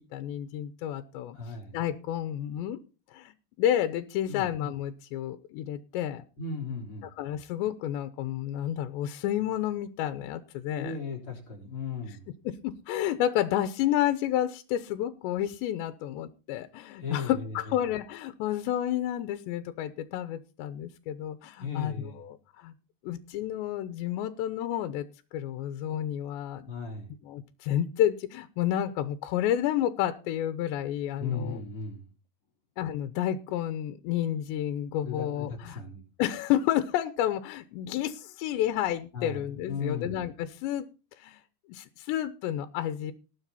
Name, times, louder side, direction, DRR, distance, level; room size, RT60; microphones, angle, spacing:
voice 1, 0.1-1.4 1.7-2.8 3.1-6.2 7.2-11.0 12.5-22.7 23.0-26.7 27.2-31.6 32.8-35.8 36.2-40.9 41.2-41.4 41.7-43.1, left 11 dB, 85° left, 11 dB, 3.1 m, -30 dB
voice 2, 1.3-1.8 4.3-4.5 6.4-7.1 10.7-12.3 17.0-17.8 21.6-22.2 26.7-27.1 31.2-32.1 35.0-36.0 39.1-40.2, left 5 dB, 35° left, 0 dB, 4.3 m, -36 dB
19.0 x 7.4 x 4.2 m, 0.34 s
omnidirectional pair, 5.0 m